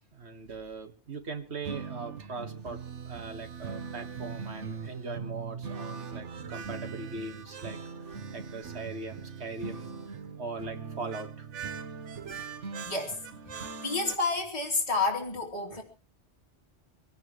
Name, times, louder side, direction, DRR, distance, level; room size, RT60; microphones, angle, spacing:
voice 1, 0.1-2.8 3.1-7.8 8.3-11.5 12.2-12.5, right 3 dB, 65° right, 7 dB, 1.8 m, -40 dB
sound 1, 1.6-14.2, right 5 dB, 85° right, 1.5 m, -40 dB
voice 2, 12.8-13.2 13.5-15.8, left 3 dB, 30° left, -1 dB, 3.0 m, -30 dB
24.0 x 17.0 x 3.0 m, 0.33 s
omnidirectional pair, 1.2 m